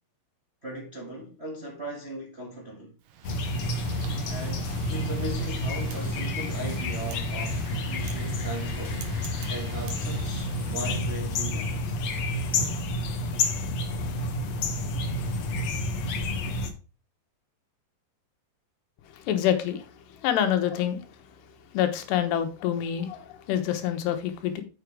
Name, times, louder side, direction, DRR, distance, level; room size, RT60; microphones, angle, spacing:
voice 1, 0.6-2.9 4.2-9.1 9.5-12.0, right 1 dB, 80° right, 0.5 m, -38 dB
Wind, 3.0-11.2, right 7 dB, 65° right, 2.3 m, -44 dB
sound 1, 3.2-16.7, left 2 dB, 65° left, 1.8 m, -29 dB
voice 2, 19.3-19.9 20.2-21.0 21.7-24.6, left 10 dB, 85° left, 3.4 m, -26 dB
7.2 x 6.6 x 4.7 m
omnidirectional pair, 4.7 m